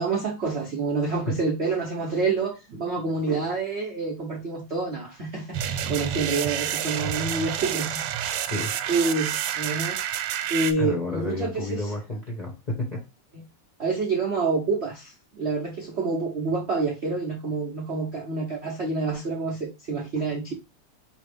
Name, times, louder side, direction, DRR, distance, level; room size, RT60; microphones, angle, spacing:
voice 1, 0.0-8.2 8.9-10.0 10.5-11.9 13.3-13.4 13.8-20.5, right 4 dB, 65° right, 0.6 m, -28 dB
sound 1, 5.5-10.7, right 10 dB, 85° right, 1.5 m, -29 dB
voice 2, 10.8-13.0, left 2 dB, 35° left, 0.7 m, -30 dB
5.2 x 3.0 x 3.3 m
omnidirectional pair, 2.4 m